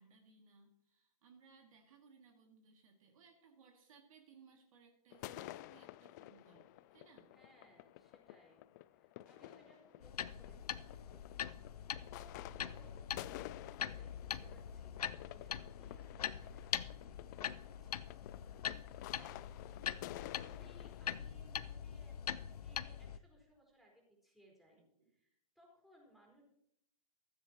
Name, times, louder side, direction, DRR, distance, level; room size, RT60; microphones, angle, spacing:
voice 1, 0.0-7.3 25.0-25.1, right 5 dB, 55° right, 2 dB, 2.3 m, -64 dB
sound 1, 5.1-21.2, left 16 dB, 30° left, 0.3 m, -52 dB
voice 2, 7.3-11.2 12.0-18.0 18.6-19.6 20.0-23.9 24.2-26.4, equal, ahead, -2 dB, 4.4 m, -66 dB
sound 2, 10.0-23.2, left 9 dB, 70° left, 0.7 m, -43 dB
15.0 x 13.5 x 3.0 m, 0.74 s
hypercardioid pair, 125°, 21 cm